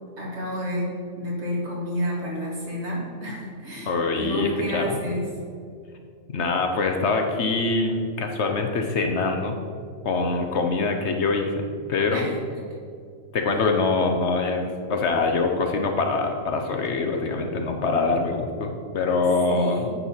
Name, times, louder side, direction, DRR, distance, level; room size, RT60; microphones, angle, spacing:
voice 1, 0.2-5.3 12.1-12.4 13.5-13.6 19.5-19.9, equal, 55° right, -4 dB, 2.1 m, -30 dB
voice 2, 3.9-5.0 6.3-9.6 10.0-11.6 11.9-12.3 13.3-19.9, left 3 dB, 60° left, 4 dB, 1.0 m, -24 dB
9.3 x 5.4 x 4.3 m, 2.2 s
omnidirectional pair, 1.4 m